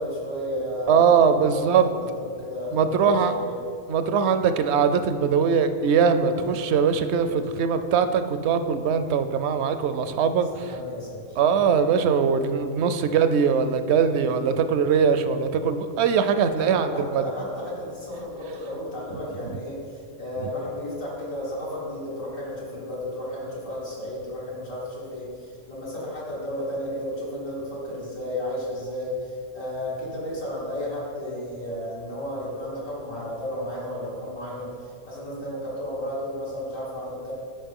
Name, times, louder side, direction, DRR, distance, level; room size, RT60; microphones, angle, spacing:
voice 1, 0.0-3.6 6.2-6.5 10.7-11.4 14.5-14.6 16.4-37.3, left 1 dB, 85° left, -8 dB, 2.9 m, -33 dB
voice 2, 0.9-1.9 2.7-3.3 3.9-10.7 11.4-17.2 20.4-20.5, right 6 dB, 65° right, 10 dB, 0.7 m, -21 dB
13.0 x 5.3 x 3.6 m, 2.4 s
omnidirectional pair, 1.3 m